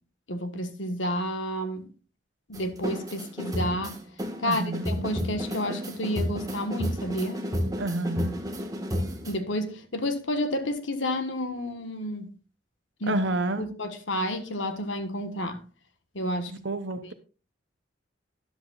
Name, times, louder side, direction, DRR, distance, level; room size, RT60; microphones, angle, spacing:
voice 1, 0.3-1.9 2.5-4.0 4.4-7.5 9.3-12.3 13.0-13.2 13.6-15.6 16.1-16.5 17.0-17.1, equal, 80° left, 1.5 m, -30 dB
sound 1, 2.5-9.3, equal, 20° right, 1.6 m, -32 dB
voice 2, 4.4-4.9 7.8-8.4 13.1-13.7 16.5-17.1, right 2 dB, 70° right, 0.8 m, -29 dB
13.0 x 10.5 x 2.4 m
head